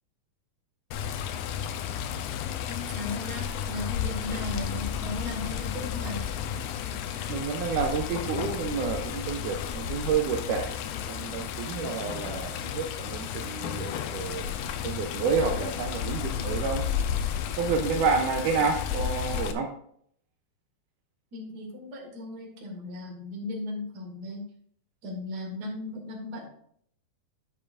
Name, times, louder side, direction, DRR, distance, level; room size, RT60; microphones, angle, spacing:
Water, 0.9-19.5, left 8 dB, 90° left, 2.6 m, -32 dB
voice 1, 2.7-6.3 21.3-24.5 25.0-26.5, left 2 dB, 40° right, -1 dB, 1.4 m, -37 dB
voice 2, 7.3-10.8 11.1-16.9 17.6-19.7, right 5 dB, 90° right, 3 dB, 1.8 m, -29 dB
10.5 x 6.7 x 2.5 m, 0.65 s
omnidirectional pair, 4.4 m